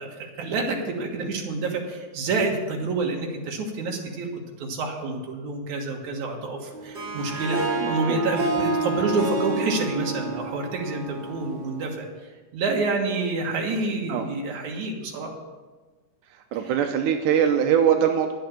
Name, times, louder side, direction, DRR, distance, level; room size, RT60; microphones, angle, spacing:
voice 1, 0.0-7.6 7.9-12.1 12.5-15.3 16.6-16.7, right 3 dB, 70° right, 1 dB, 2.9 m, -28 dB
Harp, 6.7-12.0, right 3 dB, 35° right, 2.1 m, -29 dB
voice 2, 7.8-8.2 14.1-14.3 16.5-18.3, right 8 dB, 90° right, 5 dB, 2.3 m, -22 dB
11.0 x 7.8 x 7.1 m, 1.3 s
omnidirectional pair, 3.6 m